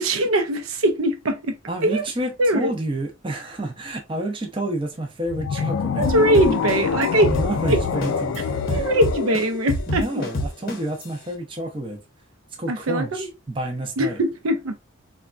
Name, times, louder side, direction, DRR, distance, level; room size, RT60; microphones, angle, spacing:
voice 1, 0.0-1.5 1.8-2.0 2.4-2.7 6.0-7.3 7.7-7.8 8.7-10.0 12.7-13.3 14.0-14.7, right 1 dB, 85° right, 0.5 m, -21 dB
voice 2, 1.7-6.1 7.2-8.9 9.9-12.0 12.6-14.2, right 1 dB, 25° right, 0.5 m, -29 dB
sound 1, 5.3-10.5, left 6 dB, 80° left, 0.3 m, -26 dB
sound 2, 6.0-8.4 8.7-11.0, left 1 dB, 45° left, 0.7 m, -26 dB
3.4 x 2.2 x 2.3 m
head